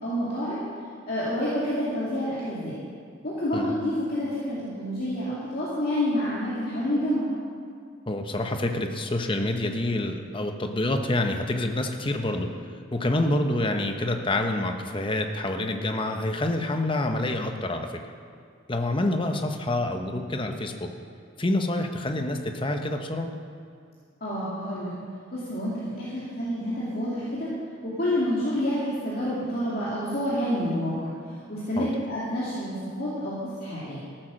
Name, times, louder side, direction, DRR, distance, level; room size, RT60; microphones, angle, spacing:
voice 1, 0.0-0.7 1.1-2.7 3.2-7.3 24.2-24.9 25.3-27.5 27.8-31.1 31.5-34.0, equal, 50° left, -9 dB, 2.6 m, -28 dB
voice 2, 8.1-12.5 12.9-18.0 18.7-20.9 21.4-23.3 31.8-31.9, left 1 dB, 25° left, 5 dB, 0.9 m, -27 dB
14.5 x 8.9 x 6.4 m, 2.3 s
head